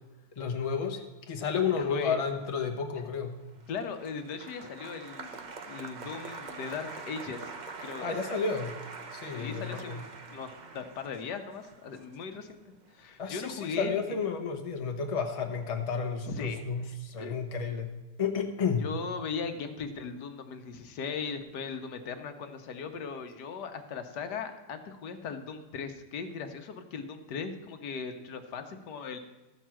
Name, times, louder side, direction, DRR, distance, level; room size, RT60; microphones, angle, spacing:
voice 1, 0.4-1.0 1.3-3.4 8.0-8.7 9.1-10.0 13.2-17.9 18.2-18.8, left 5 dB, 25° left, 2 dB, 0.9 m, -31 dB
voice 2, 1.7-2.2 2.9-3.0 3.7-7.5 7.8-8.2 9.4-10.0 10.3-14.2 16.3-17.4 18.8-29.2, left 5 dB, 75° left, 7 dB, 1.4 m, -38 dB
Applause, 3.4-13.8 14.1-14.7, right 4 dB, 55° right, 0.5 m, -45 dB
13.5 x 4.6 x 7.4 m, 1.2 s
omnidirectional pair, 1.8 m